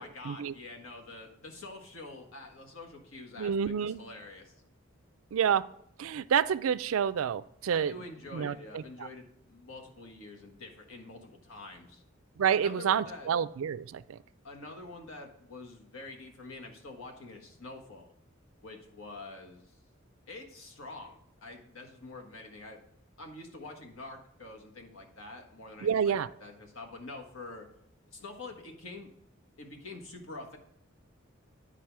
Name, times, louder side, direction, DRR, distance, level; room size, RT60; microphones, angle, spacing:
voice 1, 0.0-4.5 7.7-12.0 12.5-13.3 14.4-18.1 18.6-19.8 20.3-22.8 23.2-27.7 28.1-29.1 29.6-30.6, left 2 dB, 90° left, 2 dB, 1.5 m, -46 dB
voice 2, 3.4-4.0 5.3-5.6 6.0-7.9 8.3-8.8 12.4-14.2 25.8-26.3, right 8 dB, 80° right, 16 dB, 0.4 m, -28 dB
10.0 x 4.8 x 4.7 m, 0.74 s
head